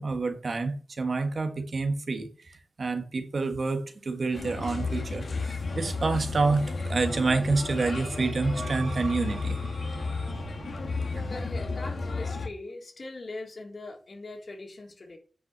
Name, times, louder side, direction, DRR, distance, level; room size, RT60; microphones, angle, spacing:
voice 1, 0.0-9.6, right 3 dB, 50° right, 1.5 m, -28 dB
sound 1, 4.2-12.1, right 4 dB, 70° right, 1.2 m, -47 dB
Bird, 4.3-12.5, left 3 dB, 65° left, 2.3 m, -33 dB
voice 2, 11.2-15.2, left 2 dB, 50° left, 3.6 m, -41 dB
9.5 x 5.9 x 7.3 m
wide cardioid pair, 120°, 0 cm